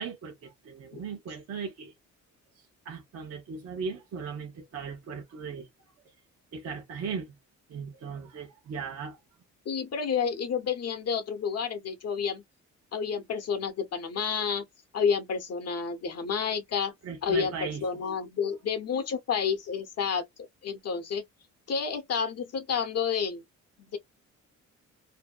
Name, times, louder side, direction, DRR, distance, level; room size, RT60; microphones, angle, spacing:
voice 1, 0.0-1.9 2.8-5.7 6.5-7.3 7.7-9.2 17.0-17.8, right 5 dB, 55° right, 0.9 m, -37 dB
voice 2, 9.7-12.4 12.9-14.6 14.9-16.9 17.2-20.2 20.6-21.2 21.7-23.4 23.8-24.0, left 6 dB, 55° left, 0.8 m, -30 dB
2.7 x 2.1 x 2.2 m
cardioid pair, 90°, 30 cm